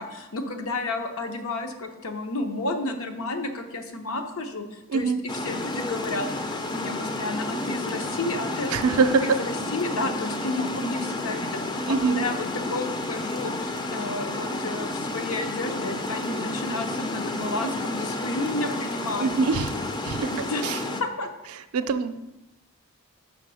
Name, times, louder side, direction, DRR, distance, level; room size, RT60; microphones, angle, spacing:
voice 1, 0.0-19.3 20.3-21.3, left 2 dB, 75° left, 5 dB, 0.9 m, -31 dB
Water, 5.3-21.0, left 2 dB, 20° left, 0.4 m, -31 dB
voice 2, 8.7-9.4 11.8-12.3 19.2-19.8 20.0-20.3 20.6-20.8 21.5-22.2, right 5 dB, 80° right, 11 dB, 0.5 m, -24 dB
5.8 x 4.9 x 6.2 m, 0.98 s
head